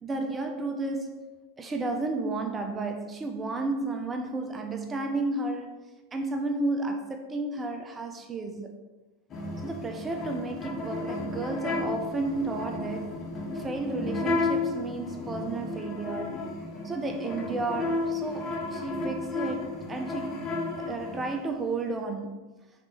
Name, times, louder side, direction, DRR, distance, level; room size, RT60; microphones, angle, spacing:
voice 1, 0.0-5.7 6.1-8.7 9.6-13.2 13.5-16.5 16.8-20.5 20.8-22.4, right 2 dB, 15° right, 0.3 m, -32 dB
sound 1, 9.3-21.4, left 2 dB, 25° left, 0.6 m, -33 dB
3.8 x 3.2 x 3.4 m
figure-of-eight pair, 90°, 0 cm